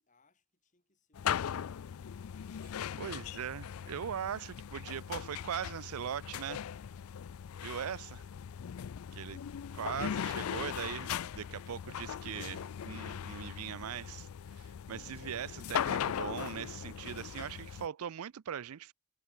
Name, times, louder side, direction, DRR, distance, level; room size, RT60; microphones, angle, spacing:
voice 1, 0.0-2.3, left 3 dB, 35° left, 7.4 m, -73 dB
sound 1, 1.1-17.9, left 8 dB, 80° left, 0.4 m, -39 dB
voice 2, 3.0-6.6 7.6-8.2 9.1-9.4 9.8-14.3 14.5-18.9, right 8 dB, 85° right, 0.4 m, -40 dB
head